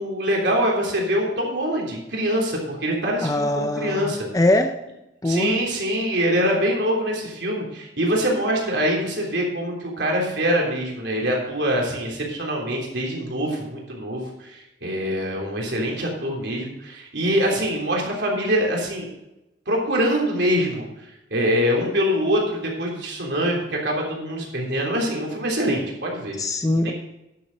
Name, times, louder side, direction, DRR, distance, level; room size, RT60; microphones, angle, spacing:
voice 1, 0.0-4.3 5.2-19.1 19.6-26.4 26.8-26.9, equal, 65° right, -1 dB, 3.4 m, -24 dB
voice 2, 3.2-4.8 5.2-5.6 26.4-26.9, left 1 dB, 20° left, 6 dB, 0.5 m, -22 dB
11.5 x 7.1 x 5.3 m, 0.92 s
head